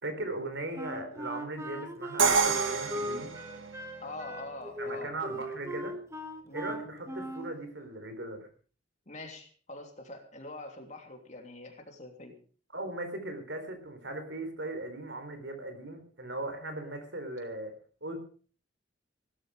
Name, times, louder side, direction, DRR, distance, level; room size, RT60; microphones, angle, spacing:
voice 1, 0.0-3.3 4.8-5.9 6.5-8.5 12.7-17.7 18.0-18.2, right 2 dB, 65° right, 8 dB, 4.0 m, -38 dB
Wind instrument woodwind instrument, 0.8-7.6, right 1 dB, 15° right, 1.6 m, -39 dB
Crash cymbal, 2.2-4.1, right 5 dB, 80° right, 2.0 m, -28 dB
voice 2, 4.0-5.1 6.4-6.7 9.1-12.3, left 2 dB, 35° left, 3 dB, 3.1 m, -44 dB
17.5 x 12.5 x 5.0 m, 0.42 s
head